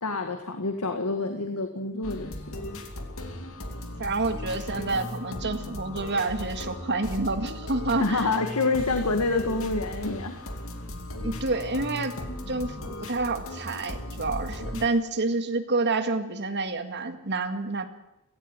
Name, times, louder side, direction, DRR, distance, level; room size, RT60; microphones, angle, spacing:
voice 1, 0.0-2.4 4.7-5.0 8.0-10.4, left 3 dB, 90° left, 6 dB, 1.9 m, -27 dB
sound 1, 2.0-14.9, left 1 dB, 65° left, 2.8 m, -37 dB
voice 2, 4.0-8.3 11.2-12.2 12.5-17.8, right 3 dB, 50° right, 8 dB, 2.0 m, -28 dB
16.5 x 16.5 x 9.8 m, 0.89 s
head